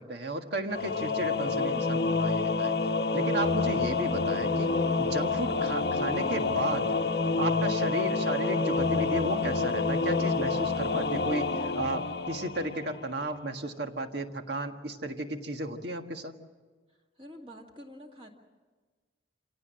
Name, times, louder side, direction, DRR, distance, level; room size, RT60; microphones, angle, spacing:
voice 1, 0.0-2.8 3.1-4.7 5.0-6.9 7.3-16.3, right 1 dB, 60° right, 6 dB, 1.6 m, -34 dB
Singing / Musical instrument, 0.7-13.2, left 3 dB, 55° left, 0.9 m, -28 dB
voice 2, 17.2-18.3, equal, 30° right, 1 dB, 2.2 m, -47 dB
27.5 x 17.5 x 7.6 m, 1.4 s
head